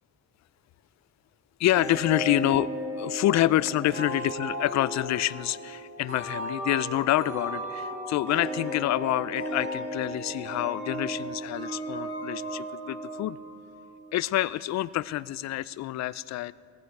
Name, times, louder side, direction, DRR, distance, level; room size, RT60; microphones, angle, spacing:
voice 1, 1.6-13.4 14.1-16.5, left 14 dB, 65° left, 20 dB, 0.4 m, -27 dB
sound 1, 1.7-14.1, right 1 dB, 45° right, 4.9 m, -35 dB
18.0 x 15.0 x 4.7 m, 2.3 s
cardioid pair, 90°, 30 cm